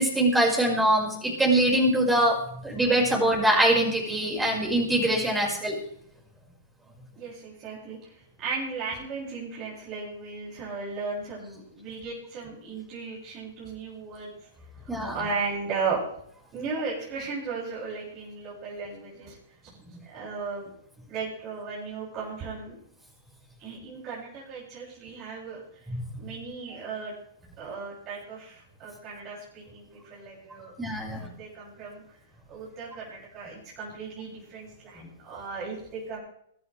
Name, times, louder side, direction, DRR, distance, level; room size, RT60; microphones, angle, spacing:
voice 1, 0.0-2.4 2.6-5.7 14.9-15.1 25.9-26.1 30.8-31.3, right 1 dB, 10° right, -2 dB, 5.3 m, -23 dB
voice 2, 7.1-14.3 14.8-16.0 16.5-19.4 19.6-19.8 20.1-20.7 21.1-22.8 23.6-25.6 26.2-27.1 27.6-30.7 31.2-32.0 32.5-36.2, right 4 dB, 35° right, -6 dB, 6.7 m, -36 dB
23.0 x 12.0 x 3.3 m, 0.69 s
hypercardioid pair, 110°, 0 cm